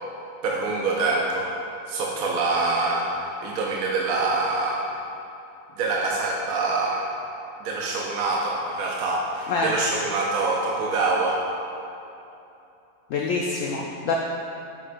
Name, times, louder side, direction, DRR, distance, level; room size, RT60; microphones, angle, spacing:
voice 1, 0.4-1.5 1.9-3.1 3.4-4.8 5.8-7.1 7.6-11.4, right 3 dB, 65° right, -2 dB, 1.0 m, -25 dB
voice 2, 13.1-14.2, left 4 dB, 85° left, -1 dB, 0.7 m, -25 dB
8.8 x 6.5 x 2.5 m, 2.8 s
omnidirectional pair, 1.9 m